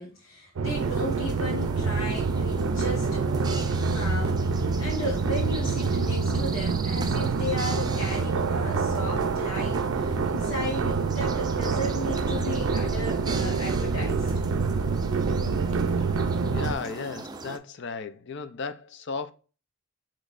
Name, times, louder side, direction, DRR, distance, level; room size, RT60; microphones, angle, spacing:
voice 1, 0.0-14.3, left 1 dB, 85° left, 1.3 m, -35 dB
sound 1, 0.6-17.6, right 3 dB, 20° right, 0.4 m, -40 dB
sound 2, 0.6-16.7, right 4 dB, 80° right, 0.4 m, -26 dB
voice 2, 16.5-19.3, left 5 dB, 60° left, 0.5 m, -35 dB
6.2 x 3.1 x 2.5 m
head